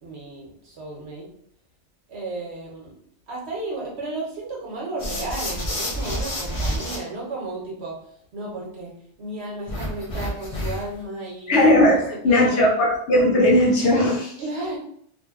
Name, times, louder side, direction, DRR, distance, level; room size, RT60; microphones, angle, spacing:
voice 1, 0.0-1.3 2.1-2.9 3.3-8.0 8.3-8.9 9.2-11.5 11.9-12.7 14.4-14.8, right 2 dB, 65° right, -3 dB, 1.1 m, -33 dB
sound 1, 5.0-7.0 9.7-11.0, equal, 40° left, 0.5 m, -29 dB
voice 2, 11.5-14.3, left 1 dB, 80° left, -3 dB, 1.1 m, -18 dB
3.0 x 2.1 x 2.3 m, 0.65 s
omnidirectional pair, 1.2 m